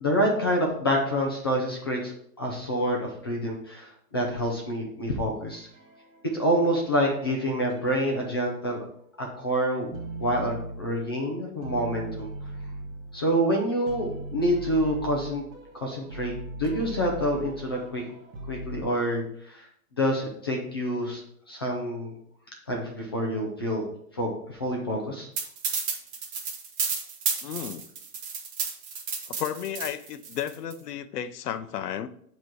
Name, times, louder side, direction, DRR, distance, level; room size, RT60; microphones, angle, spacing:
voice 1, 0.0-5.7 6.3-8.8 9.2-9.9 10.2-12.3 13.1-15.4 15.7-16.3 16.6-18.0 18.5-19.6 20.0-21.2 21.5-22.1 22.7-23.9 24.1-25.3, equal, 20° left, -1 dB, 0.3 m, -27 dB
sound 1, 5.5-6.7 7.1-9.0 9.4-11.3 11.6-18.8, right 1 dB, 65° right, 1.7 m, -40 dB
sound 2, 25.4-30.7, right 5 dB, 20° right, 0.7 m, -31 dB
voice 2, 27.4-27.8 29.3-32.1, left 10 dB, 85° left, 12 dB, 0.7 m, -33 dB
6.9 x 3.0 x 4.6 m, 0.68 s
hypercardioid pair, 140°, 46 cm